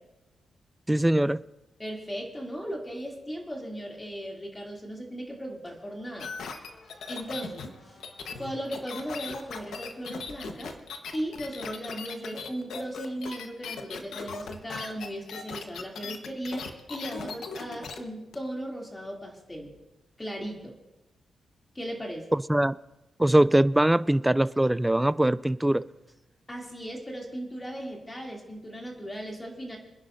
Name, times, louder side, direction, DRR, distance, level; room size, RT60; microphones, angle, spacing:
voice 1, 0.9-1.4 22.3-22.7 23.2-25.8, right 1 dB, 10° right, 0.3 m, -22 dB
voice 2, 1.8-6.3 7.1-8.0 8.3-10.7 11.1-19.7 20.2-20.7 21.7-22.3 26.5-29.8, equal, 20° left, 2.8 m, -37 dB
Squeak, 5.7-11.2, left 3 dB, 50° left, 2.8 m, -57 dB
sound 1, 6.2-18.0 18.3-18.4, left 5 dB, 80° left, 1.2 m, -39 dB
26.5 x 10.5 x 2.7 m
cardioid pair, 85°, 0 cm